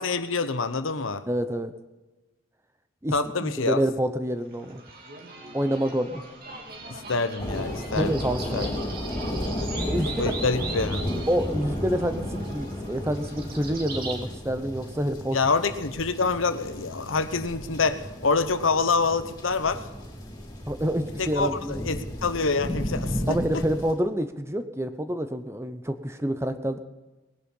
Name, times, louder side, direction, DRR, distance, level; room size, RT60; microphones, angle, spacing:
voice 1, 0.0-1.2 3.1-3.8 6.9-8.2 8.5-8.7 10.2-11.1 15.3-19.8 21.2-23.6, left 4 dB, 85° left, 11 dB, 1.0 m, -26 dB
voice 2, 1.3-1.7 3.0-4.8 5.5-6.2 7.9-9.0 9.9-10.1 11.3-15.4 20.7-21.8 23.3-26.8, right 1 dB, 15° right, 9 dB, 0.8 m, -27 dB
sound 1, 4.5-14.2, right 3 dB, 50° right, 2.6 m, -40 dB
sound 2, 7.4-23.9, left 1 dB, 20° left, 4.1 m, -34 dB
20.0 x 10.5 x 5.5 m, 1.1 s
head